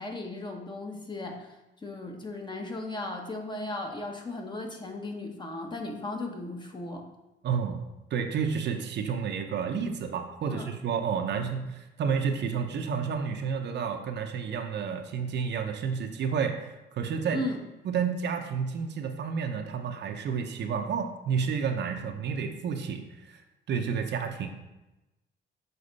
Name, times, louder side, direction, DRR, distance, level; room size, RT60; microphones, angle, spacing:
voice 1, 0.0-1.5 1.8-7.1 10.5-10.7 17.3-17.6, left 2 dB, 20° left, 2 dB, 1.0 m, -36 dB
voice 2, 7.4-7.8 8.1-17.4 17.8-23.4 23.7-24.5, right 6 dB, 60° right, 5 dB, 0.7 m, -30 dB
6.8 x 4.2 x 4.0 m, 1.0 s
cardioid pair, 90°, 20 cm